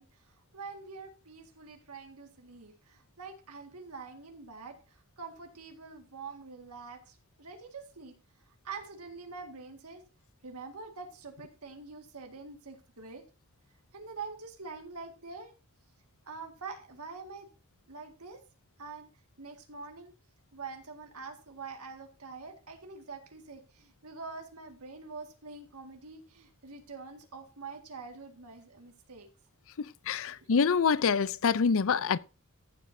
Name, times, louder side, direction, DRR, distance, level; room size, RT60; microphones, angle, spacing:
voice 1, 0.0-8.2 8.6-10.0 10.4-13.2 13.9-15.5 16.2-17.5 17.9-18.4 18.8-19.1 19.4-20.1 20.5-29.3 30.2-30.5, right 4 dB, 80° right, 1.9 m, -45 dB
voice 2, 29.8-32.2, left 6 dB, 65° left, 0.5 m, -26 dB
14.5 x 8.0 x 2.7 m
head